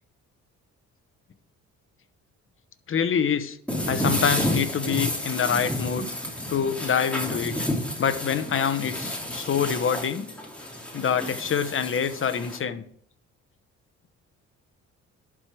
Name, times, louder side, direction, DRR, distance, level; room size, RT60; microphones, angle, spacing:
voice 1, 2.9-3.6 3.8-6.1 6.5-7.5 8.0-10.3 10.9-12.8, left 7 dB, 45° left, 11 dB, 1.0 m, -26 dB
sound 1, 3.7-12.6, left 1 dB, 5° left, 3.2 m, -30 dB
11.0 x 4.9 x 6.0 m, 0.62 s
cardioid pair, 90°, 30 cm